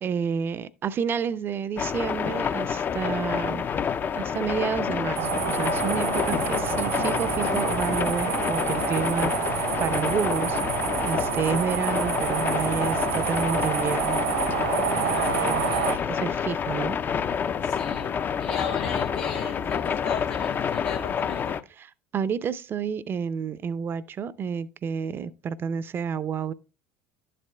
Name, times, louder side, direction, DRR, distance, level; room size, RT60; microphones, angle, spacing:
voice 1, 0.0-3.7 4.2-14.2 15.0-17.0 21.8-26.5, right 7 dB, 35° right, 0.5 m, -30 dB
sound 1, 1.8-21.6, left 7 dB, 30° left, 0.5 m, -28 dB
sound 2, 5.2-16.0, right 8 dB, 70° right, 0.9 m, -28 dB
Run, 5.7-6.7 7.0-8.5 8.8-10.3 10.6-10.7, left 9 dB, 50° left, 0.9 m, -39 dB
voice 2, 14.9-16.1 17.6-18.1 18.4-21.6, left 8 dB, 75° left, 0.8 m, -37 dB
11.5 x 7.6 x 2.2 m
hypercardioid pair, 65°, 6 cm